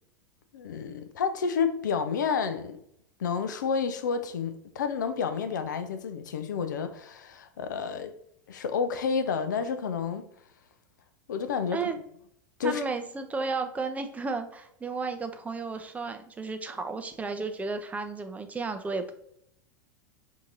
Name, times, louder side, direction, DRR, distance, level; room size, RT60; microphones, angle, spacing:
voice 1, 0.5-2.8 3.2-8.1 8.5-10.3 11.3-11.8 12.6-12.8, left 6 dB, 70° left, 0.4 m, -30 dB
voice 2, 12.6-19.2, right 4 dB, 15° right, 0.5 m, -33 dB
5.7 x 2.7 x 2.6 m
figure-of-eight pair, 85°, 10 cm